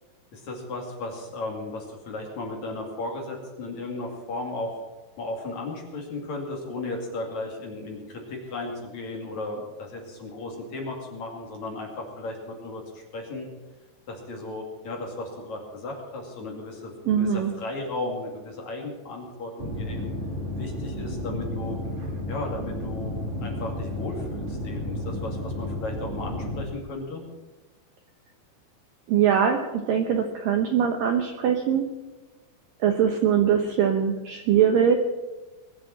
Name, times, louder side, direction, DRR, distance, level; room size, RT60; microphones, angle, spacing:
voice 1, 0.3-4.8 5.2-13.5 14.1-20.1 20.6-21.8 22.3-23.1 23.4-27.2, left 2 dB, 45° left, 1 dB, 3.2 m, -35 dB
voice 2, 17.1-17.5 29.1-31.8 32.8-35.0, right 8 dB, 75° right, 5 dB, 2.1 m, -22 dB
sound 1, 19.6-26.6, left 1 dB, 25° right, 1.6 m, -32 dB
21.5 x 7.5 x 7.6 m, 1.2 s
omnidirectional pair, 5.1 m